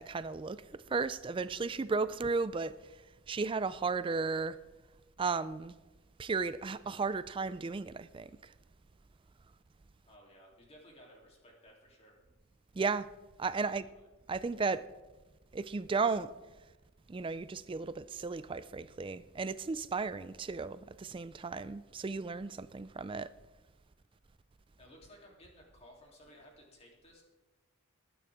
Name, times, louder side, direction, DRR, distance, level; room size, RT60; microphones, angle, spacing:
voice 1, 0.0-2.7 3.3-4.6 5.2-5.7 6.2-8.3 12.8-13.1 13.4-13.9 14.3-14.8 15.5-16.3 17.1-23.3, right 4 dB, 25° right, 0.3 m, -34 dB
voice 2, 10.0-12.1 13.8-14.1 24.8-27.2, equal, 30° left, 3.2 m, -57 dB
19.5 x 9.4 x 3.6 m
head